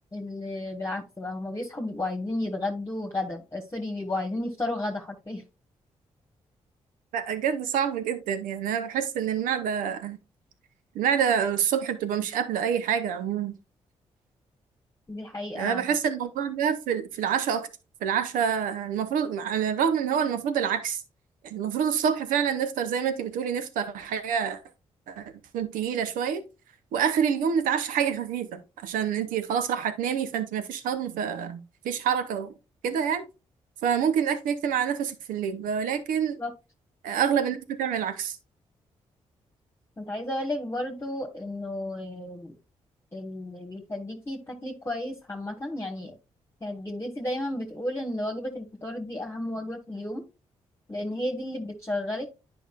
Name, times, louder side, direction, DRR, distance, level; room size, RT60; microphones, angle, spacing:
voice 1, 0.1-5.4 15.1-15.8 36.4-36.5 40.0-42.5 43.1-46.1 46.6-50.2 50.9-52.3, left 1 dB, 20° left, 1.4 m, -33 dB
voice 2, 7.1-10.2 10.9-13.5 15.5-17.7 18.0-21.0 21.4-24.6 25.1-25.2 25.5-26.4 26.9-31.6 31.8-32.5 32.8-33.2 33.8-36.4 37.0-38.4, right 8 dB, 80° right, 0.8 m, -27 dB
10.0 x 5.0 x 2.4 m
hypercardioid pair, 45°, 14 cm